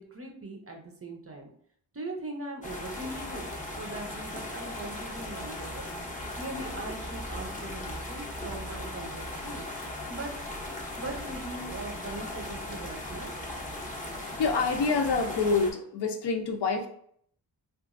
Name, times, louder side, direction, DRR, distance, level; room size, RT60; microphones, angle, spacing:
voice 1, 0.0-1.5 1.9-3.4 3.8-5.9 6.4-9.6 10.1-10.5 11.0-13.3, right 2 dB, 30° right, 1 dB, 0.5 m, -40 dB
sound 1, 2.6-15.7, left 1 dB, 15° left, 0.6 m, -38 dB
voice 2, 14.0-16.9, left 4 dB, 65° left, 3 dB, 0.5 m, -27 dB
2.9 x 2.4 x 2.4 m, 0.64 s
wide cardioid pair, 105°, 46 cm